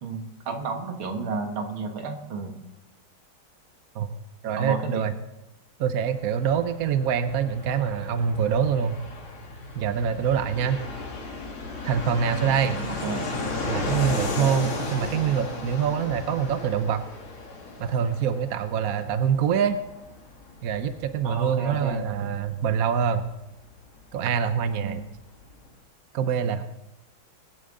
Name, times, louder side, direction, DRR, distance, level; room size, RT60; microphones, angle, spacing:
voice 1, 0.0-2.6 4.5-5.1 12.6-13.3 21.2-22.3 24.8-25.1, right 4 dB, 85° right, 4 dB, 2.4 m, -32 dB
voice 2, 4.4-5.1 5.8-9.0 9.8-10.8 11.8-12.8 13.7-17.0 17.8-19.8 20.6-23.2 24.1-25.0 26.1-26.6, right 7 dB, 60° right, 10 dB, 1.0 m, -25 dB
Fixed-wing aircraft airplane, 6.1-24.5 24.7-24.8 25.0-25.7, left 3 dB, 85° left, 3.1 m, -35 dB
22.0 x 10.5 x 3.8 m, 0.92 s
omnidirectional pair, 2.2 m